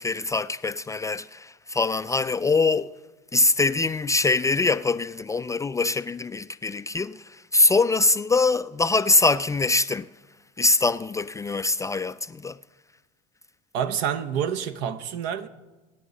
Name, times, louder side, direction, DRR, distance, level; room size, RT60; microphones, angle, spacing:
voice 1, 0.0-2.9 3.3-7.2 7.5-10.1 10.6-12.6, left 3 dB, 15° left, 0.3 m, -23 dB
voice 2, 13.7-15.5, right 8 dB, 65° right, 1.1 m, -28 dB
24.0 x 10.0 x 4.1 m
hypercardioid pair, 70°, 20 cm